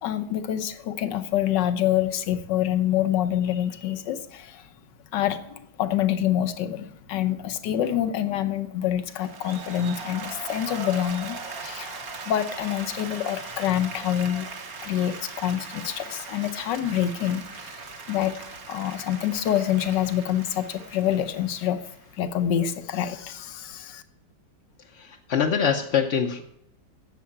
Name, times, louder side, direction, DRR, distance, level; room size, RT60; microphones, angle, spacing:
voice 1, 0.0-4.7 5.1-14.5 14.8-17.8 18.1-18.4 18.7-21.8 22.2-24.0, left 11 dB, 80° left, 10 dB, 1.5 m, -26 dB
Applause, 9.1-22.2, right 4 dB, 55° right, 1.8 m, -39 dB
voice 2, 24.9-26.4, left 7 dB, 50° left, 2 dB, 0.8 m, -24 dB
10.5 x 7.7 x 8.5 m, 0.79 s
omnidirectional pair, 1.9 m